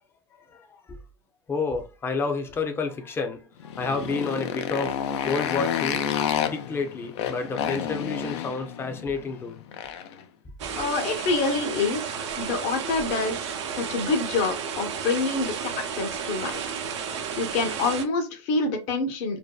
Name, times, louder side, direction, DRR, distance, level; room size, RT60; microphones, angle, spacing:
voice 1, 0.5-1.0 1.5-6.1 6.5-9.6, left 4 dB, 15° left, 0.5 m, -30 dB
Motorcycle, 3.6-10.2, left 9 dB, 75° left, 0.4 m, -30 dB
sound 1, 10.6-18.0, right 7 dB, 90° right, 0.6 m, -32 dB
voice 2, 10.8-15.7 16.0-16.8 17.4-19.4, left 3 dB, 50° left, 0.8 m, -27 dB
2.6 x 2.1 x 2.2 m
supercardioid pair, 130°, 14 cm